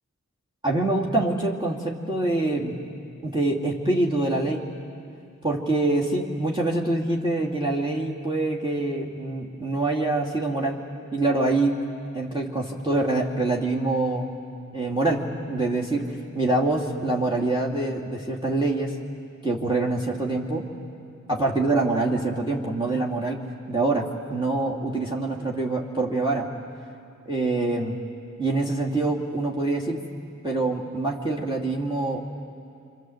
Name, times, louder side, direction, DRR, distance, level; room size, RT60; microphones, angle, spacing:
voice 1, 0.6-2.8 3.2-4.7 5.4-10.8 11.1-11.8 12.1-14.3 14.7-18.9 19.4-20.7 21.3-23.4 23.7-26.5 27.3-28.0 28.4-30.0 30.4-32.4, right 2 dB, 15° right, -3 dB, 2.6 m, -25 dB
26.5 x 26.0 x 8.0 m, 2.5 s
wide cardioid pair, 50°, 30 cm